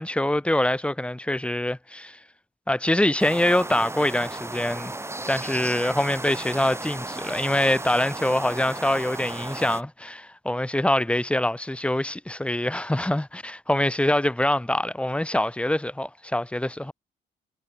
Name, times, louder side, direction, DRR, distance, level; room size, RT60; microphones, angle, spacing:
voice 1, 0.0-2.2 2.7-4.9 5.3-16.9, left 1 dB, 5° left, 1.1 m, -24 dB
sound 1, 3.2-9.8, right 2 dB, 15° right, 3.9 m, -35 dB
cardioid pair, 90°, 20 cm